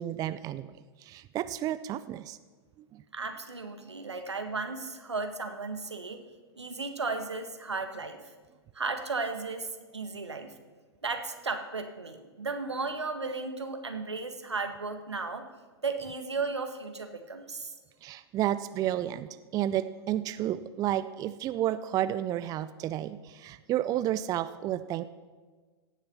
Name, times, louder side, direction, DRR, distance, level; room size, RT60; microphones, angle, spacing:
voice 1, 0.0-2.4 2.9-3.0 18.0-25.0, right 12 dB, 25° right, 14 dB, 0.5 m, -31 dB
voice 2, 3.1-6.2 6.6-8.3 8.7-10.5 11.0-15.5 15.8-17.7, right 4 dB, 90° right, 6 dB, 1.5 m, -35 dB
16.5 x 7.3 x 6.9 m, 1.4 s
figure-of-eight pair, 105°, 14 cm